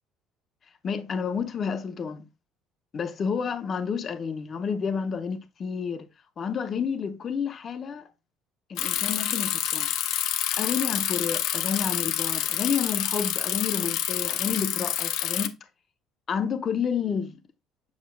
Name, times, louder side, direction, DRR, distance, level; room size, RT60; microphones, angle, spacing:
voice 1, 0.8-2.3 2.9-6.1 6.4-8.1 8.7-9.9 10.6-15.6 16.3-17.4, left 6 dB, 35° left, 0.8 m, -30 dB
Bicycle, 8.8-15.5, left 12 dB, 70° left, 0.5 m, -28 dB
7.2 x 6.2 x 2.3 m
cardioid pair, 140°, 0 cm